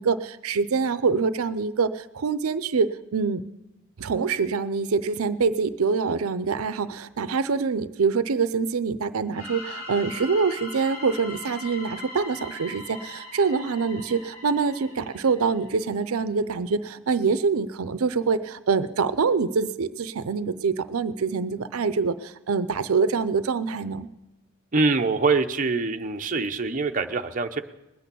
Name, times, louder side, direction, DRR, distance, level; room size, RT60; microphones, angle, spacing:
voice 1, 0.0-3.4 4.0-24.1, right 5 dB, 90° right, 14 dB, 0.5 m, -25 dB
sound 1, 9.3-16.0, left 2 dB, 65° left, 3.9 m, -40 dB
voice 2, 24.7-27.6, right 3 dB, 40° right, 5 dB, 0.6 m, -24 dB
20.5 x 8.4 x 6.9 m, 0.98 s
head